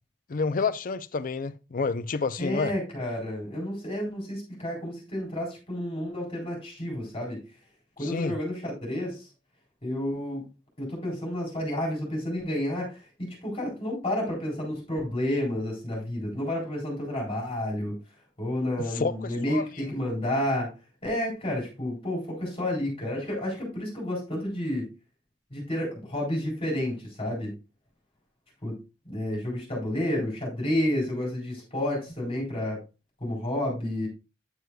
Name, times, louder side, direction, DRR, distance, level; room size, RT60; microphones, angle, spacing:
voice 1, 0.3-2.7 8.0-8.3 18.8-19.9, left 4 dB, 50° left, 0.5 m, -29 dB
voice 2, 2.4-7.4 8.0-9.3 9.8-10.4 10.8-13.0 13.4-18.0 18.4-20.7 21.0-24.9 25.5-27.5 28.6-28.8 29.1-32.8 33.2-34.1, left 1 dB, 30° left, 3.8 m, -30 dB
9.4 x 8.0 x 2.3 m
head